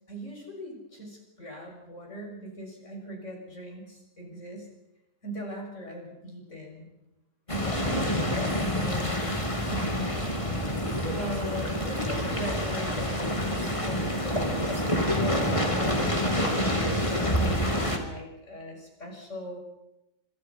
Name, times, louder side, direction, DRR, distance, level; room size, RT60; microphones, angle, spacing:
voice 1, 0.1-4.7 5.2-6.9 7.5-9.2 9.7-9.9 10.7-14.8 15.0-19.6, equal, 45° left, 1 dB, 7.3 m, -40 dB
sound 1, 7.5-18.0, equal, 20° left, 3.0 m, -27 dB
26.5 x 26.0 x 5.7 m, 0.91 s
omnidirectional pair, 1.8 m